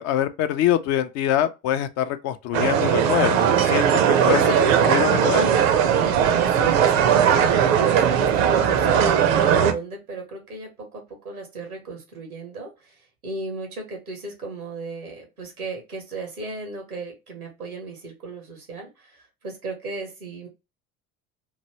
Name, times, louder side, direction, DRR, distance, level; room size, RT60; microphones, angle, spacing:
voice 1, 0.0-3.9 4.2-4.5 4.9-5.5, left 11 dB, 40° left, 0.4 m, -24 dB
sound 1, 2.5-9.7, right 8 dB, 65° right, 0.6 m, -19 dB
voice 2, 4.3-5.0 6.5-20.5, right 3 dB, 90° right, 1.0 m, -36 dB
3.0 x 2.6 x 2.9 m
figure-of-eight pair, 65°, 43 cm